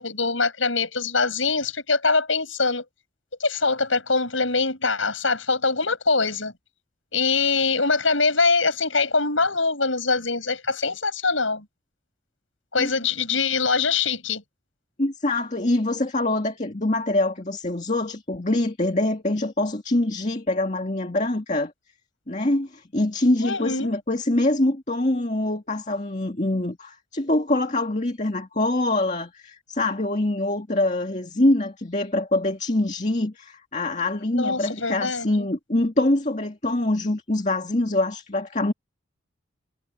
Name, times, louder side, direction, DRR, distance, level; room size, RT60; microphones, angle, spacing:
voice 1, 0.0-2.8 3.4-6.5 7.1-11.6 12.7-14.4 23.4-23.9 34.3-35.5, left 4 dB, 75° left, 7.9 m, -23 dB
voice 2, 15.0-21.7 22.3-38.7, left 1 dB, 35° left, 2.1 m, -24 dB
head